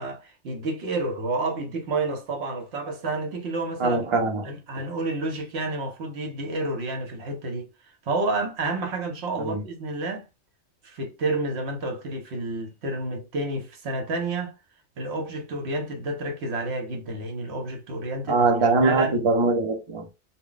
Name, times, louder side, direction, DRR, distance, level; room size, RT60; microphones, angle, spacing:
voice 1, 0.0-4.1 4.4-7.7 8.0-10.3 10.8-14.5 15.0-18.4 18.8-19.2, right 2 dB, 65° right, 1.0 m, -30 dB
voice 2, 3.8-4.4 9.4-9.6 18.3-20.1, right 3 dB, 35° right, 0.6 m, -22 dB
2.2 x 2.1 x 3.7 m
omnidirectional pair, 1.2 m